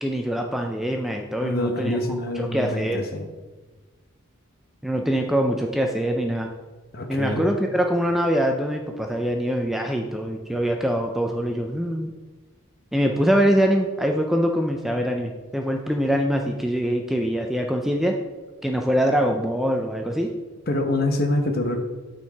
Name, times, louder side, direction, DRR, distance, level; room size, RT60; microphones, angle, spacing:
voice 1, 0.0-2.0 2.5-3.0 4.8-6.5 7.1-12.1 12.9-18.1 18.6-20.3, equal, ahead, 2 dB, 0.4 m, -23 dB
voice 2, 1.4-3.3 6.9-7.4 20.7-21.8, left 1 dB, 45° left, 5 dB, 0.9 m, -25 dB
8.7 x 4.5 x 4.6 m, 1.3 s
head